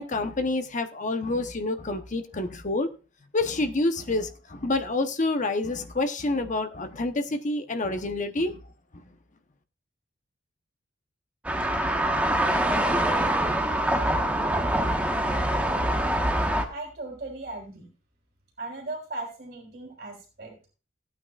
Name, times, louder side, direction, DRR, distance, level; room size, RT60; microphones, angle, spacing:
voice 1, 0.0-2.9 3.3-8.6 8.9-9.0, left 2 dB, 40° left, 0.9 m, -28 dB
sound 1, 11.4-16.6, right 1 dB, 10° right, 1.2 m, -24 dB
voice 2, 16.7-17.9 18.6-20.7, right 2 dB, 50° right, 3.3 m, -37 dB
17.0 x 9.0 x 2.4 m
head